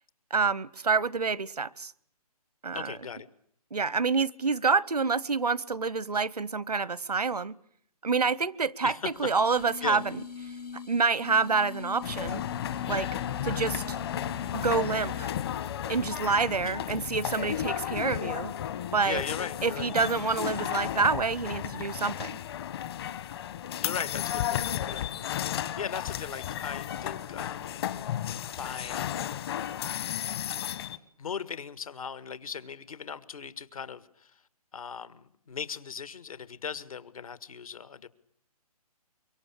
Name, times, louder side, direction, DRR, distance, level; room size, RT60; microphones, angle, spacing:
voice 1, 0.3-1.9 2.6-2.9 3.7-7.6 8.0-10.2 10.9-12.4 12.9-13.1 13.4-14.0 14.5-15.3 15.9-18.5 18.9-19.2 19.6-22.4, right 4 dB, 80° right, 22 dB, 1.0 m, -27 dB
voice 2, 2.7-3.3 8.8-9.3 9.8-10.0 16.6-16.7 19.0-19.9 23.8-25.1 25.5-27.9 28.5-29.1 31.2-34.4 34.7-38.1, left 6 dB, 65° left, 14 dB, 1.8 m, -38 dB
sound 1, 9.1-15.6, left 6 dB, 80° left, 1.3 m, -42 dB
sound 2, 12.0-31.0, left 11 dB, 40° left, 1.4 m, -33 dB
24.5 x 23.5 x 8.6 m, 0.66 s
figure-of-eight pair, 140°, 20 cm